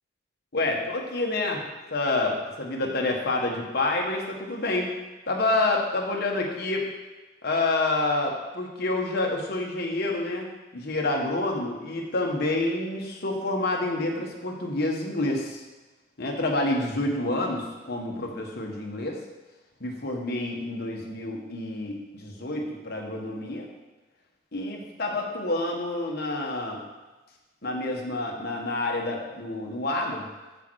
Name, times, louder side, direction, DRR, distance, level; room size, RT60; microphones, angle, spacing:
voice 1, 0.5-1.6 1.9-4.9 5.3-6.9 7.4-10.5 10.7-15.6 16.2-19.2 19.8-23.7 24.5-26.8 27.6-30.3, left 2 dB, 50° left, 0 dB, 1.3 m, -28 dB
7.6 x 6.8 x 4.7 m, 1.2 s
head